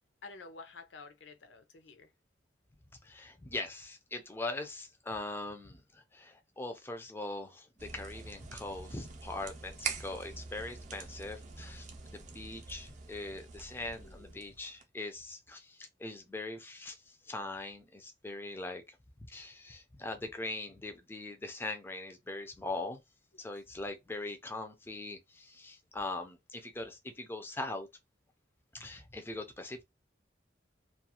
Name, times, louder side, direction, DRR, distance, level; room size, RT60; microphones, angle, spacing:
voice 1, 0.2-2.1 14.0-14.4 23.3-23.4, left 4 dB, 80° left, 0.6 m, -51 dB
voice 2, 3.0-17.0 17.3-19.0 19.3-23.0 23.4-27.9 28.7-29.8, left 2 dB, 10° left, 0.4 m, -41 dB
sound 1, 7.8-14.8, right 5 dB, 40° right, 0.5 m, -44 dB
2.4 x 2.3 x 2.7 m
head